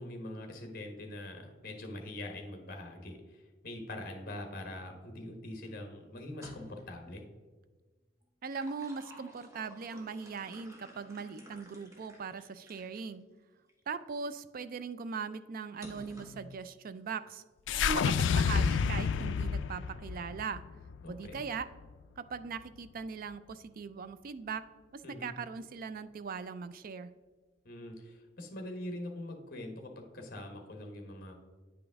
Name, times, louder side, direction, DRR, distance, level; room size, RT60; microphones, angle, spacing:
voice 1, 0.0-7.2 21.0-21.4 25.0-25.3 27.6-31.4, left 1 dB, 50° left, 3 dB, 1.2 m, -43 dB
sound 1, 6.3-7.0 8.2-13.1 13.7-13.8 15.8-16.5, equal, 15° right, 1.1 m, -53 dB
voice 2, 8.4-13.3 13.9-17.4 17.7-20.7 21.1-21.7 22.2-27.1, right 5 dB, 50° right, 13 dB, 0.4 m, -40 dB
sound 2, 17.7-22.0, left 6 dB, 75° left, 0.3 m, -30 dB
9.5 x 5.2 x 3.5 m, 1.3 s
head